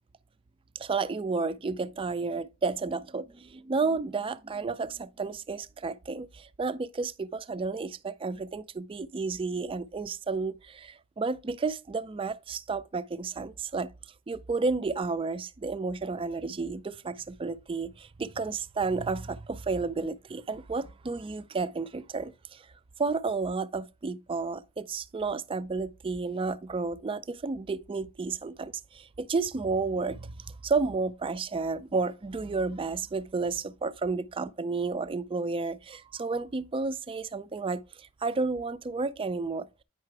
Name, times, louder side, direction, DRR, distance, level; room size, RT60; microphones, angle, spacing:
voice 1, 0.8-13.9 14.3-22.7 23.0-39.7, right 4 dB, 25° right, 0.3 m, -32 dB
8.9 x 5.7 x 3.3 m
head